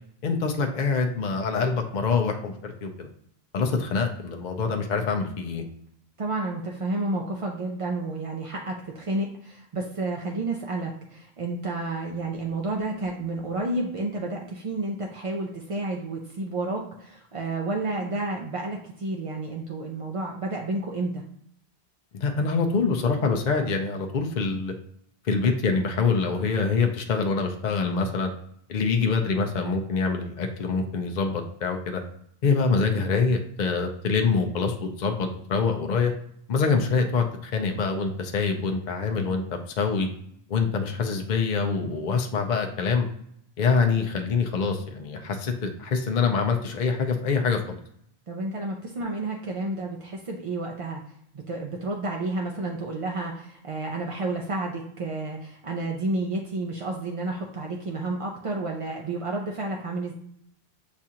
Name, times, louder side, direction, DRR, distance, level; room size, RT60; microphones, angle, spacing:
voice 1, 0.2-3.1 3.5-5.6 22.1-24.7 25.2-28.3 28.7-32.0 32.4-36.1 36.5-40.1 40.5-43.1 43.6-47.8, left 4 dB, 55° left, 3 dB, 0.6 m, -25 dB
voice 2, 6.2-21.2 48.3-51.0 51.3-60.1, right 2 dB, 50° right, 0 dB, 0.4 m, -31 dB
7.1 x 2.4 x 2.8 m, 0.70 s
omnidirectional pair, 1.1 m